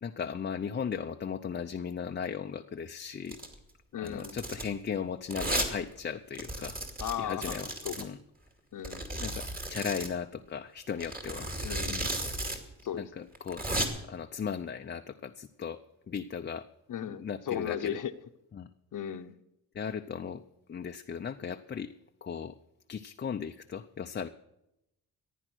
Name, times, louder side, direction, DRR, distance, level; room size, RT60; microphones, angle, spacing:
voice 1, 0.0-3.4 4.0-8.2 9.2-11.5 11.9-12.1 13.0-13.7 14.1-15.8 16.1-16.7 17.1-18.0 18.5-18.7 19.7-20.4 20.7-21.9 22.2-22.5 22.9-24.3, left 7 dB, 30° left, 5 dB, 0.6 m, -37 dB
Domestic sounds home sounds, 3.3-3.5 4.1-4.7 5.3-5.7 6.0-6.1 6.4-8.1 8.8-10.1 11.0-12.6 12.8-12.9 13.4-13.9, right 1 dB, 25° right, 2.5 m, -34 dB
voice 2, 3.9-4.4 7.0-7.6 7.8-7.9 8.7-9.1 11.6-12.1 12.8-13.0 16.9-18.1 18.9-19.4, left 9 dB, 60° left, 8 dB, 0.9 m, -36 dB
15.0 x 10.0 x 6.2 m, 0.86 s
cardioid pair, 130°, 35 cm